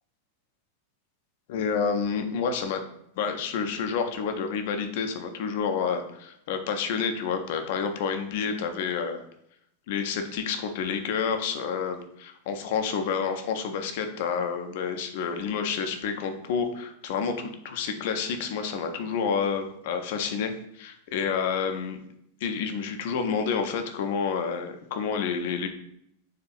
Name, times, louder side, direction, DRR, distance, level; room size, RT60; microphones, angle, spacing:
voice 1, 1.5-2.8 3.2-9.2 9.9-22.0 22.4-25.7, left 6 dB, 50° left, 6 dB, 0.5 m, -29 dB
4.2 x 2.5 x 2.4 m, 0.74 s
figure-of-eight pair, 90°, 0 cm